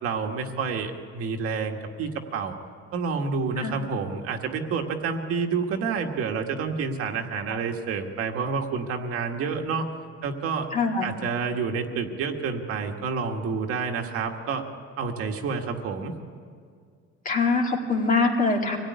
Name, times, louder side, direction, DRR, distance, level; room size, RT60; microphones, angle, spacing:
voice 1, 0.0-2.5 2.9-9.9 10.2-10.7 11.0-14.6 15.0-16.1, right 5 dB, 50° right, 3 dB, 1.9 m, -29 dB
voice 2, 10.7-11.1 17.2-18.8, left 3 dB, 25° left, 1 dB, 2.2 m, -23 dB
25.0 x 17.0 x 9.7 m, 2.1 s
cardioid pair, 175°, 30 cm